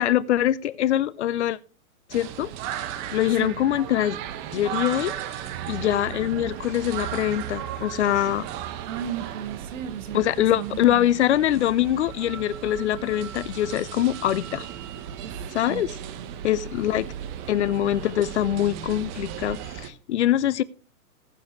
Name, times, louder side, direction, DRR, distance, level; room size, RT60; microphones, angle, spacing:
voice 1, 0.0-1.6 2.1-2.5 3.1-4.2 4.5-5.1 5.7-8.5 10.1-14.7 15.5-15.9 16.4-17.1 17.5-20.6, left 12 dB, 50° left, 19 dB, 0.7 m, -23 dB
sound 1, 2.1-19.9, right 10 dB, 25° right, 0.9 m, -36 dB
voice 2, 8.9-11.1 15.2-16.3, right 9 dB, 60° right, 10 dB, 1.9 m, -35 dB
20.5 x 7.3 x 3.1 m, 0.36 s
hypercardioid pair, 145°, 43 cm